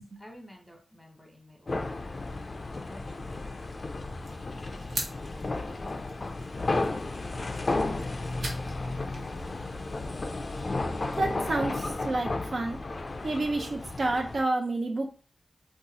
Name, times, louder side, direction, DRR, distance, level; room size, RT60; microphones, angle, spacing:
voice 1, 0.2-2.4 2.9-6.0, equal, ahead, 0 dB, 1.0 m, -54 dB
sound 1, 1.7-14.4, left 2 dB, 45° left, 0.3 m, -33 dB
sound 2, 4.2-10.6, right 2 dB, 85° right, 0.8 m, -43 dB
voice 2, 11.2-12.8 13.2-15.2, right 2 dB, 60° right, 2 dB, 0.4 m, -29 dB
2.5 x 2.3 x 4.0 m, 0.38 s
wide cardioid pair, 85°, 0 cm